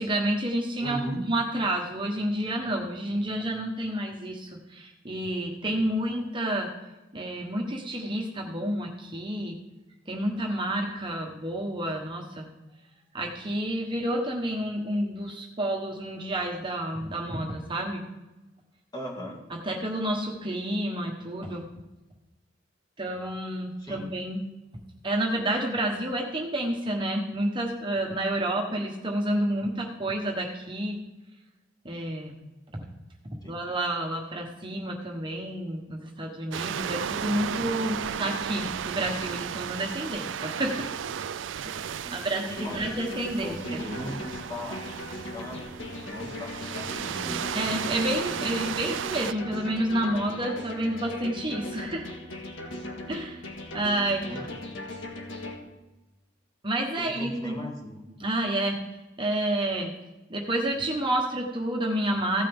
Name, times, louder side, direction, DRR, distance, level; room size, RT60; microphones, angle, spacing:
voice 1, 0.0-6.7 7.1-9.5 10.1-12.5 13.1-18.0 19.5-21.6 23.0-24.4 25.0-31.0 31.8-32.4 33.4-40.9 41.6-43.8 47.5-52.1 53.1-53.5 53.7-54.3 56.6-57.6 58.2-58.8 59.2-59.9 60.3-62.5, right 1 dB, 25° right, 0 dB, 1.2 m, -29 dB
voice 2, 0.8-1.3 18.9-19.4 23.8-24.1 33.4-33.6 42.0-43.0 43.4-44.9 45.3-45.6 46.1-47.4 54.3-54.4 56.9-58.1, equal, 20° left, -1 dB, 2.0 m, -38 dB
sound 1, 36.5-49.3, right 8 dB, 70° right, 0.4 m, -34 dB
sound 2, 42.6-55.5, left 1 dB, 80° left, 2.0 m, -38 dB
16.0 x 9.2 x 3.6 m, 1.1 s
head